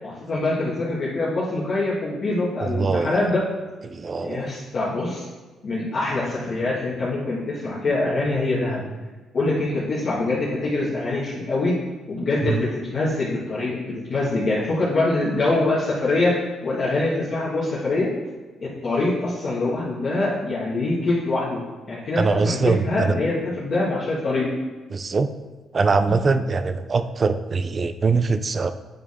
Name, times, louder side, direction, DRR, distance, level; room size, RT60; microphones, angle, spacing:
voice 1, 0.0-3.4 4.2-5.3 5.6-8.8 9.3-11.8 12.1-18.1 18.6-21.6 21.9-24.5 26.1-26.2, left 2 dB, 50° left, -9 dB, 1.7 m, -24 dB
voice 2, 2.7-3.2 3.9-4.5 12.4-12.6 22.2-23.1 24.9-25.3 25.7-28.7, right 4 dB, 35° right, 11 dB, 0.4 m, -22 dB
8.5 x 4.4 x 3.6 m, 1.3 s
cardioid pair, 90°, 0 cm